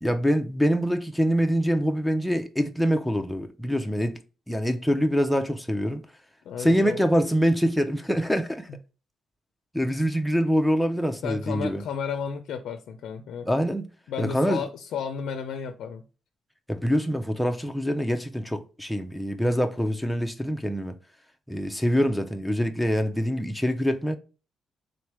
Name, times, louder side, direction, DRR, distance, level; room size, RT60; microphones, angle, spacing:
voice 1, 0.0-4.2 4.5-6.0 6.6-8.7 9.7-11.8 13.5-13.9 14.2-14.6 16.7-20.9 21.5-24.2, equal, ahead, 0.5 m, -25 dB
voice 2, 6.5-7.0 11.2-13.5 14.1-16.0, left 7 dB, 75° left, 0.4 m, -33 dB
3.9 x 3.2 x 3.0 m
cardioid pair, 90°, 0 cm